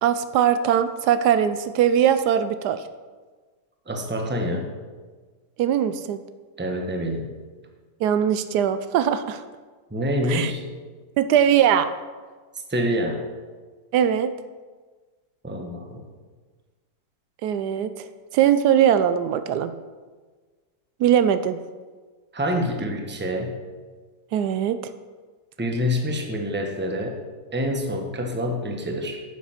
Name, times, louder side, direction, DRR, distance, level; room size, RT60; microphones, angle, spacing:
voice 1, 0.0-2.8 5.6-6.2 8.0-9.4 10.3-10.5 11.2-11.9 13.9-14.3 17.4-19.7 21.0-21.6 24.3-24.8, right 9 dB, 80° right, 11 dB, 1.1 m, -21 dB
voice 2, 3.9-4.7 6.6-7.3 9.9-10.6 12.7-13.2 15.4-16.0 22.3-23.6 25.6-27.2 27.5-29.2, equal, 10° right, 2 dB, 0.9 m, -26 dB
9.4 x 7.3 x 5.8 m, 1.4 s
omnidirectional pair, 1.8 m